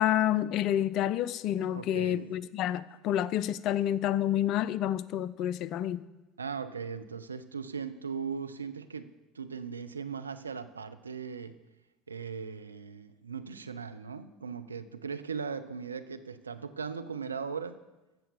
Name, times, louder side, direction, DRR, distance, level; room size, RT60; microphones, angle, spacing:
voice 1, 0.0-6.0, left 11 dB, 50° left, 0.5 m, -29 dB
voice 2, 1.7-2.3 6.4-9.1 9.3-11.5 12.1-17.8, right 6 dB, 85° right, 0.6 m, -38 dB
14.5 x 5.7 x 6.9 m
figure-of-eight pair, 70°, 0 cm